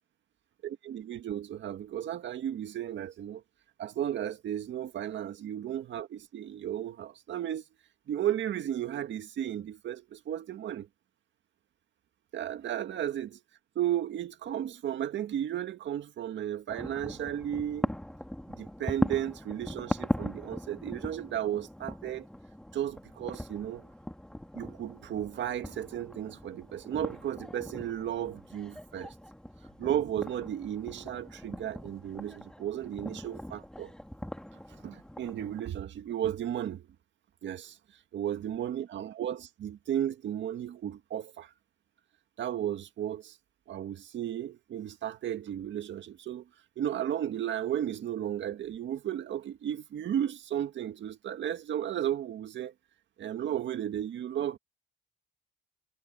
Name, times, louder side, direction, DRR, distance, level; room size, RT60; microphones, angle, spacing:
voice 1, 0.8-3.4 3.8-7.6 8.1-10.9 12.3-13.4 13.8-17.9 18.6-22.3 22.7-23.9 24.6-29.1 29.8-33.9 34.8-36.9 37.4-37.8 38.1-41.5 42.4-43.3 43.7-46.4 46.8-52.7 53.2-54.6, right 10 dB, 70° right, 1.9 m, -34 dB
sound 1, 16.7-35.6, left 1 dB, 5° left, 2.3 m, -40 dB
cardioid pair, 90°, 20 cm